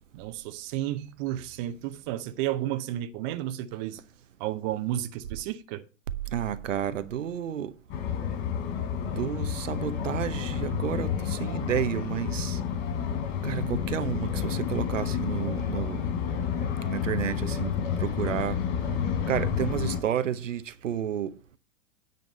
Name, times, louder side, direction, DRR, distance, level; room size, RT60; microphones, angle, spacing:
voice 1, 0.1-4.0 4.4-5.8, right 13 dB, 35° right, 0.8 m, -32 dB
voice 2, 6.3-7.7 9.0-12.6 13.4-16.0 16.9-17.7 18.0-18.6 19.3-21.3, right 9 dB, 70° right, 0.8 m, -31 dB
sound 1, 7.9-20.0, left 7 dB, 40° left, 4.5 m, -30 dB
9.3 x 5.2 x 6.4 m
figure-of-eight pair, 105°, 39 cm